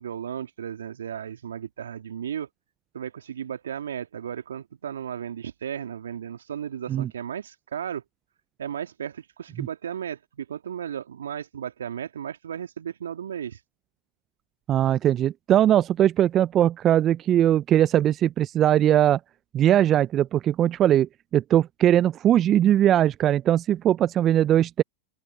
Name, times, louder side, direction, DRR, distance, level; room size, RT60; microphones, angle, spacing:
voice 1, 0.0-2.5 2.9-8.0 8.6-13.6, right 9 dB, 75° right, 2.6 m, -35 dB
voice 2, 14.7-19.2 19.5-24.8, right 11 dB, 30° right, 0.5 m, -20 dB
figure-of-eight pair, 95°, 0 cm